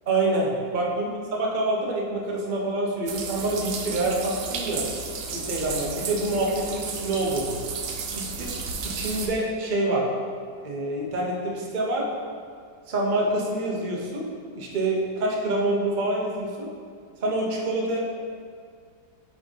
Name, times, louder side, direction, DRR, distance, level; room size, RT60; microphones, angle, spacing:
voice 1, 0.1-1.1 1.4-4.8 5.3-7.6 8.1-8.5 8.8-10.1 10.6-12.1 12.9-14.3 14.5-16.7 17.2-18.0, right 2 dB, 40° right, -2 dB, 0.7 m, -26 dB
sound 1, 3.1-9.3, right 5 dB, 70° right, 1.1 m, -33 dB
9.1 x 3.7 x 3.7 m, 2.1 s
omnidirectional pair, 1.8 m